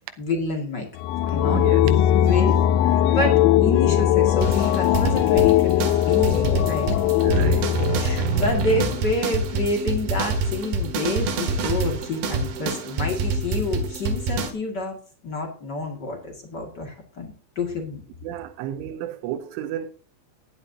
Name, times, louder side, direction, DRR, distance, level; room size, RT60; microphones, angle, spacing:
voice 1, 0.2-0.9 1.3-1.6 2.2-2.6 2.9-6.9 7.3-7.5 7.9-15.0 15.2-18.0, left 2 dB, 40° left, 1.5 m, -28 dB
sound 1, 1.0-8.5, left 12 dB, 80° left, 3.0 m, -20 dB
voice 2, 1.5-2.0 3.1-3.2 7.2-7.8 18.2-19.9, right 11 dB, 90° right, 3.3 m, -32 dB
sound 2, 4.4-14.5, right 3 dB, 65° right, 3.1 m, -26 dB
16.5 x 11.0 x 2.8 m
omnidirectional pair, 5.4 m